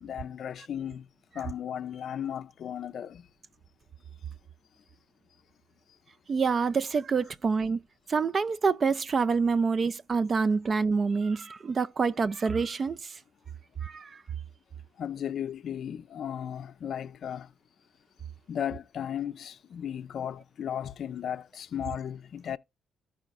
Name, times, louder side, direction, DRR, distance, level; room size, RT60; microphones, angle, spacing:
voice 1, 0.0-1.1 1.3-3.3 15.0-17.5 18.5-22.6, left 9 dB, 60° left, 0.4 m, -35 dB
voice 2, 6.3-7.8 8.1-13.2 13.8-14.2, right 5 dB, 40° right, 0.4 m, -27 dB
14.0 x 4.8 x 2.4 m
cardioid pair, 90°, 0 cm